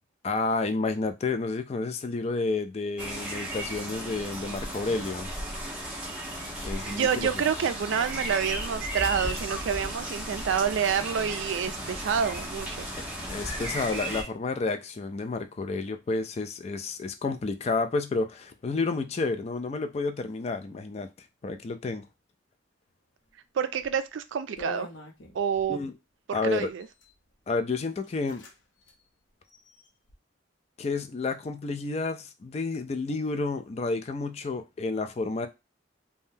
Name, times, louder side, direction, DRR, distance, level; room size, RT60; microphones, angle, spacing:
voice 1, 0.2-5.3 6.6-7.3 13.3-21.1 21.4-22.0 25.7-25.9 26.3-26.7 27.5-28.4 30.8-35.5, left 3 dB, 35° left, 0.3 m, -30 dB
sound 1, 3.0-14.2, right 1 dB, 10° right, 1.0 m, -35 dB
voice 2, 6.9-12.9 23.5-24.9 25.3-25.8 26.3-26.9, right 7 dB, 80° right, 0.4 m, -28 dB
sound 2, 23.7-24.0 24.6-25.7 26.7-27.1 27.7-27.8 28.0-28.5 28.8-28.9 29.4-30.1, left 1 dB, 80° left, 0.8 m, -43 dB
3.5 x 2.2 x 2.7 m
head